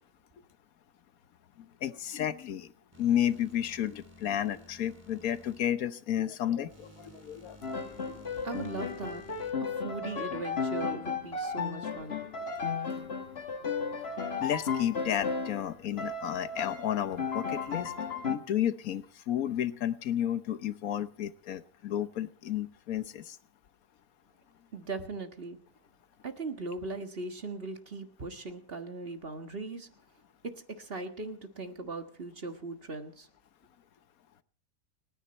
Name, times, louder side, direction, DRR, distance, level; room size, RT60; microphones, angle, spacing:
voice 1, 1.8-2.7 3.0-8.2 14.4-23.4, left 10 dB, 70° left, 13 dB, 1.3 m, -32 dB
sound 1, 2.9-5.6 6.7-9.5, equal, 10° right, 2.5 m, -54 dB
Piano, 7.6-15.7 16.0-18.4, left 5 dB, 40° left, 1.7 m, -34 dB
voice 2, 8.4-9.2 9.6-12.2 24.7-25.6 26.2-29.9 30.4-33.3, right 3 dB, 40° right, 7 dB, 1.8 m, -39 dB
29.5 x 10.0 x 4.3 m, 0.41 s
omnidirectional pair, 1.6 m